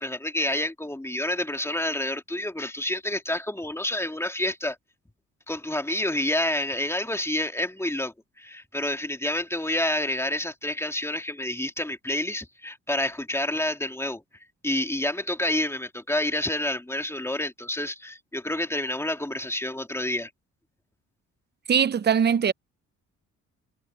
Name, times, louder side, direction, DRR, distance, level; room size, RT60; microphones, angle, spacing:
voice 1, 0.0-4.8 5.5-14.2 14.6-20.3, left 1 dB, 10° left, 2.9 m, -28 dB
voice 2, 21.7-22.5, right 7 dB, 35° right, 0.8 m, -21 dB
cardioid pair, 90°, 30 cm